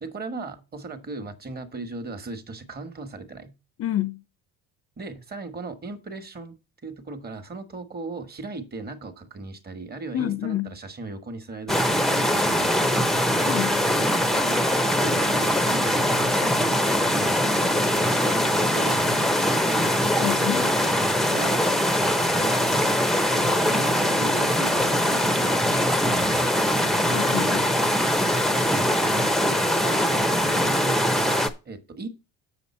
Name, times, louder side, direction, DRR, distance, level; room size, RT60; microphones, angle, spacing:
voice 1, 0.0-3.5 5.0-6.6 6.8-13.0 14.3-19.5 19.9-20.2 21.3-21.6 22.0-22.6 23.3-27.2 28.5-29.1 29.4-32.1, right 3 dB, 25° right, 1.3 m, -37 dB
voice 2, 3.8-4.2 10.1-10.7 13.4-13.8 20.2-20.8 27.1-27.7, left 12 dB, 40° left, 0.7 m, -28 dB
sound 1, 11.7-31.5, equal, ahead, 0.7 m, -22 dB
7.7 x 7.1 x 4.3 m
cardioid pair, 150°, 37 cm